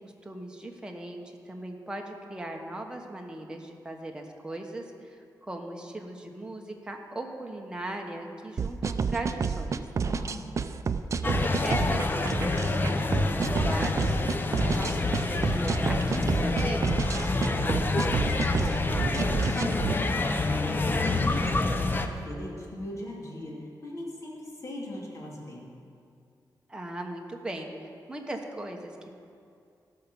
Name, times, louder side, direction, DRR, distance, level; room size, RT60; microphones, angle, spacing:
voice 1, 0.2-9.8 11.2-14.1 14.6-16.9 26.7-29.2, right 1 dB, 10° right, 1 dB, 1.2 m, -38 dB
sound 1, 8.6-20.0, right 5 dB, 45° right, 0.4 m, -29 dB
voice 2, 10.0-10.5 17.3-18.4 18.8-25.7, left 1 dB, 45° left, -4 dB, 2.8 m, -39 dB
sound 2, 11.2-22.1, left 2 dB, 25° left, 0.7 m, -27 dB
16.0 x 6.0 x 7.0 m, 2.4 s
wide cardioid pair, 140°, 7 cm